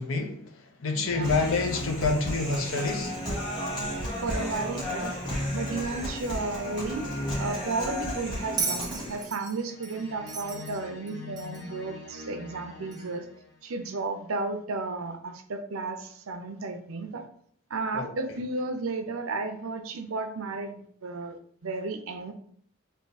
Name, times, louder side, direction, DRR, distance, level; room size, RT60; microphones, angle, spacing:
voice 1, 0.0-3.2 17.9-18.1, left 3 dB, 75° left, 0.7 m, -28 dB
voice 2, 0.9-1.3 4.2-5.2 5.5-7.1 7.4-13.3 13.6-17.2 17.7-22.3, right 3 dB, 90° right, 0.6 m, -33 dB
sound 1, 1.0-13.6, left 1 dB, 55° left, 1.0 m, -40 dB
Human voice, 1.2-9.2, left 1 dB, 20° left, 1.5 m, -34 dB
Bell, 8.6-11.8 12.9-13.0, right 5 dB, 20° right, 0.6 m, -35 dB
3.5 x 2.7 x 4.0 m
head